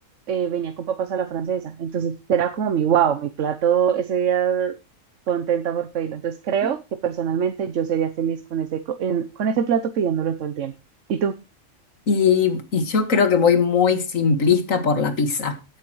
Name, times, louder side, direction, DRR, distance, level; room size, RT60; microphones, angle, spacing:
voice 1, 0.3-4.7 5.3-10.7 11.1-11.3, right 8 dB, 70° right, 1.2 m, -23 dB
voice 2, 12.1-15.6, left 6 dB, 80° left, 2.1 m, -19 dB
16.5 x 8.9 x 3.1 m
omnidirectional pair, 1.4 m